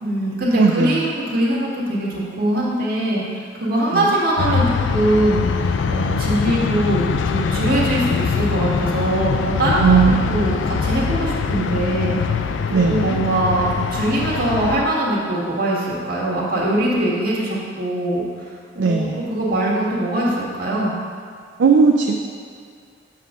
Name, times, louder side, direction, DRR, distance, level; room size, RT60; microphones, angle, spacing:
voice 1, 0.0-18.2 18.7-20.3 20.6-20.9, right 1 dB, 55° right, -6 dB, 1.7 m, -22 dB
voice 2, 0.6-1.0 9.8-10.2 12.7-13.2 18.8-19.2 21.6-22.1, right 5 dB, 70° right, 2 dB, 0.4 m, -16 dB
sound 1, 4.4-14.8, left 5 dB, 90° left, 0.4 m, -23 dB
7.3 x 3.7 x 6.5 m, 2.2 s
head